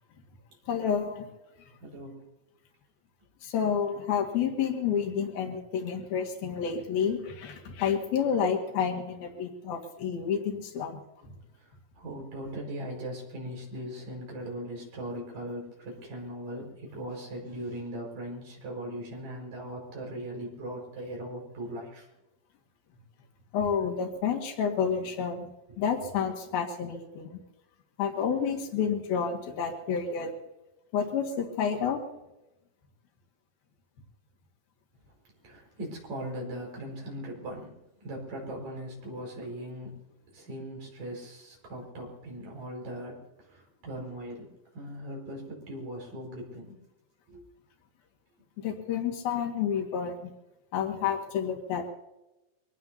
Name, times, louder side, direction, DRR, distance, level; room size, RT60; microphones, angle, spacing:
voice 1, 0.7-1.3 3.4-10.9 23.5-25.5 25.8-27.4 28.0-30.3 30.9-32.0 48.6-50.3 50.7-51.9, left 7 dB, 90° left, 0 dB, 3.8 m, -29 dB
voice 2, 1.8-2.2 4.2-4.3 11.6-22.1 25.7-25.8 35.4-37.8 38.0-40.0 40.3-46.8 47.3-47.4, right 1 dB, 65° right, -2 dB, 6.8 m, -39 dB
24.5 x 19.0 x 2.8 m, 0.95 s
omnidirectional pair, 4.2 m